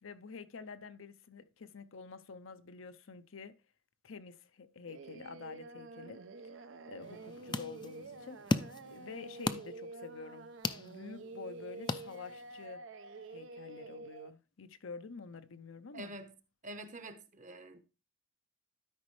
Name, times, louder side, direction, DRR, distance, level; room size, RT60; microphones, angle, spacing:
voice 1, 0.0-3.6 4.0-6.5 6.9-8.4 8.9-12.8 13.3-16.1, left 5 dB, 75° left, 0.6 m, -48 dB
Singing, 4.9-14.3, right 2 dB, 65° right, 0.6 m, -48 dB
sound 1, 7.0-12.7, left 3 dB, 20° left, 0.4 m, -39 dB
voice 2, 15.9-16.3 16.6-17.8, right 1 dB, 40° right, 0.9 m, -46 dB
12.5 x 5.2 x 3.2 m
head